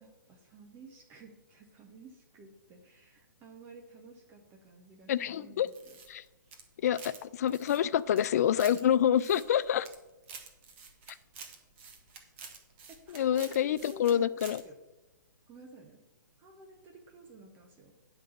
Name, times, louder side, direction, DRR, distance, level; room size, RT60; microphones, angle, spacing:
voice 1, 0.0-6.0 9.3-9.6 12.9-14.8 15.5-16.0 16.4-17.9, right 2 dB, 20° right, 3 dB, 0.9 m, -53 dB
voice 2, 5.1-5.7 6.1-6.2 6.8-9.8 13.1-14.6, left 10 dB, 50° left, 16 dB, 0.4 m, -27 dB
sound 1, 5.7-7.2 7.5-8.8 9.2-10.0 10.2-14.1 14.4-14.6, right 5 dB, 40° right, 1.5 m, -48 dB
10.0 x 4.0 x 6.8 m, 1.1 s
hypercardioid pair, 150°, 11 cm